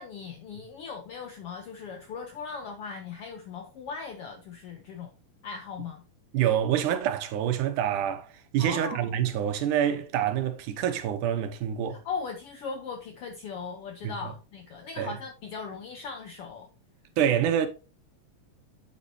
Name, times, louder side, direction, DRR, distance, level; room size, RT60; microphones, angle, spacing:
voice 1, 0.0-5.1 5.4-6.0 8.6-9.1 11.9-16.7, left 5 dB, 75° left, 1.3 m, -38 dB
voice 2, 6.3-12.0 14.0-14.3 15.0-15.1 17.2-17.7, right 10 dB, 80° right, 2.5 m, -27 dB
8.4 x 7.8 x 2.7 m
omnidirectional pair, 3.6 m